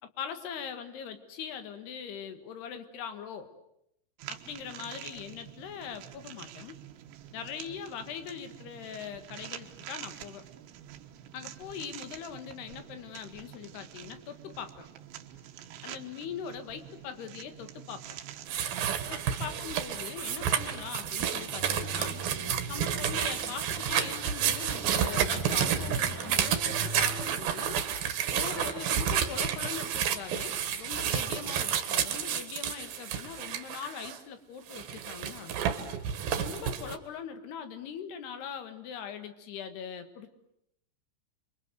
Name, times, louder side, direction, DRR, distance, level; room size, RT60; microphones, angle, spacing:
voice 1, 0.0-3.5 4.3-6.8 7.3-10.4 11.3-14.9 15.8-18.2 19.1-22.2 22.7-27.8 28.3-35.5 36.4-40.3, left 7 dB, 65° left, 9 dB, 3.6 m, -41 dB
sound 1, 4.2-23.0, right 11 dB, 80° right, 3.5 m, -47 dB
sound 2, 18.5-34.2 34.7-37.0, right 9 dB, 65° right, 3.2 m, -30 dB
sound 3, 21.5-27.3, right 1 dB, 20° left, 5.3 m, -41 dB
29.0 x 24.0 x 8.1 m, 0.77 s
omnidirectional pair, 5.2 m